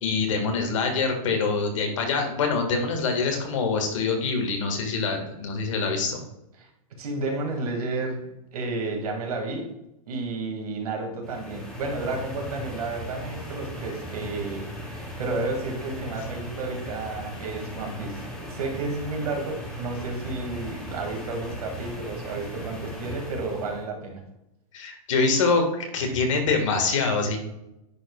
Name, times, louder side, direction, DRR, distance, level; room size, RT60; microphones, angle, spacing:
voice 1, 0.0-6.2 24.7-27.4, left 4 dB, 55° left, 3 dB, 1.6 m, -25 dB
voice 2, 7.0-9.7 10.1-24.2, right 3 dB, 75° right, 2 dB, 2.0 m, -32 dB
sound 1, 11.2-23.9, equal, 5° left, 0.6 m, -38 dB
10.0 x 4.5 x 2.2 m, 0.89 s
supercardioid pair, 180°, 19 cm